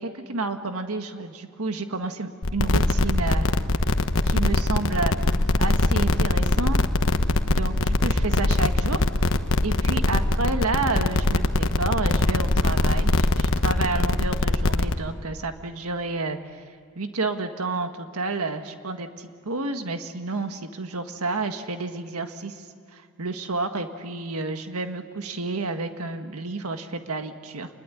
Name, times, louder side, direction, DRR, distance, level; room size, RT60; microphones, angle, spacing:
voice 1, 0.0-3.5 4.3-5.1 5.6-6.8 7.4-9.1 9.6-16.4 17.0-22.6 22.9-27.7, right 3 dB, 75° right, 6 dB, 1.7 m, -30 dB
sound 1, 2.4-14.9, left 2 dB, 65° left, 1.3 m, -22 dB
28.5 x 21.0 x 9.9 m, 2.3 s
head